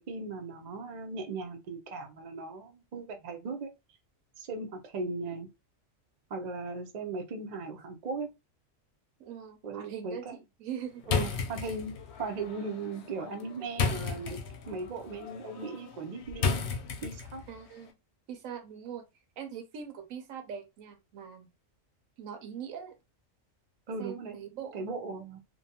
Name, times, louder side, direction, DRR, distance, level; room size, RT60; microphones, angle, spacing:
voice 1, 0.1-3.7 4.4-5.5 6.3-8.3 9.6-10.4 11.1-11.9 12.2-14.4 14.7-16.7 17.0-17.4 23.9-24.4 24.7-25.4, right 3 dB, 60° right, 0.4 m, -38 dB
voice 2, 9.2-11.4 17.5-17.9 18.3-19.1 19.4-21.5 22.2-23.0 24.0-24.9, right 8 dB, 85° right, 1.1 m, -42 dB
sound 1, 11.0-17.5, left 5 dB, 65° left, 0.8 m, -34 dB
2.6 x 2.2 x 2.8 m
omnidirectional pair, 1.4 m